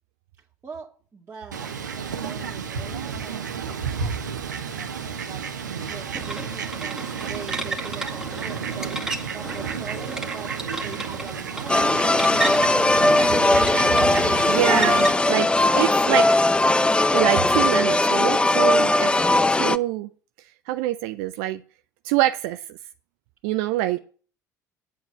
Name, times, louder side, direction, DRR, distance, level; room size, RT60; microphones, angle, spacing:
voice 1, 0.6-1.7 2.2-4.3 4.7-5.5 5.7-13.4, right 5 dB, 25° right, 2.1 m, -41 dB
Fowl, 1.5-15.1, right 6 dB, 85° right, 1.2 m, -32 dB
sound 1, 6.1-15.6, right 2 dB, 5° right, 2.1 m, -34 dB
sound 2, 11.7-19.8, left 2 dB, 10° left, 0.6 m, -19 dB
voice 2, 14.2-16.4 17.1-19.2 19.5-20.1 20.7-21.6 22.0-22.8 23.4-24.0, right 15 dB, 65° right, 0.5 m, -25 dB
9.2 x 8.0 x 6.8 m
hypercardioid pair, 65°, 9 cm